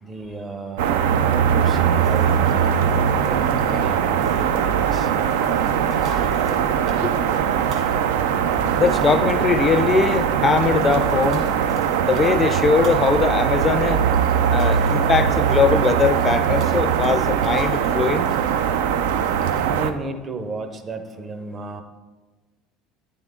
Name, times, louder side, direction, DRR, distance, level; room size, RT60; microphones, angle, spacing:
voice 1, 0.0-2.8 3.1-5.1 19.7-21.8, right 3 dB, 35° right, 7 dB, 0.7 m, -33 dB
sound 1, 0.8-19.9, right 8 dB, 80° right, 0.3 m, -21 dB
sound 2, 2.0-19.7, right 3 dB, 50° right, 1.7 m, -39 dB
voice 2, 8.8-11.5 12.0-14.0 14.5-18.3, left 5 dB, 30° left, 12 dB, 0.4 m, -21 dB
8.9 x 3.6 x 3.5 m, 1.3 s
supercardioid pair, 90°, 0 cm